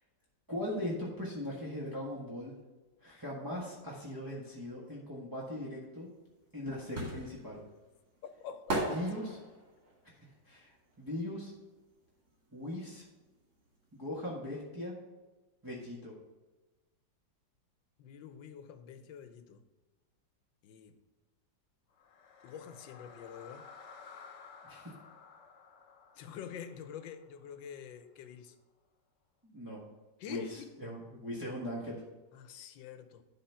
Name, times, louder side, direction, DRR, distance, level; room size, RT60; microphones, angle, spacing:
voice 1, 0.5-2.5 3.0-6.1 6.5-7.6 8.9-9.4 10.4-11.5 12.5-13.0 13.9-15.0 15.6-16.1 24.6-24.9 29.4-29.8 30.3-32.0, left 1 dB, 15° right, -6 dB, 1.2 m, -39 dB
sound 1, 6.1-11.9 12.2-13.8 14.1-14.2, right 1 dB, 50° right, 2.8 m, -39 dB
voice 2, 8.4-9.2 18.0-19.7 20.6-21.0 22.4-23.7 26.2-28.5 30.2-30.8 32.3-33.2, left 8 dB, 85° left, 10 dB, 1.5 m, -47 dB
sound 2, 21.9-28.1, left 5 dB, 50° left, 0.9 m, -55 dB
11.5 x 4.0 x 5.7 m, 1.2 s
omnidirectional pair, 2.0 m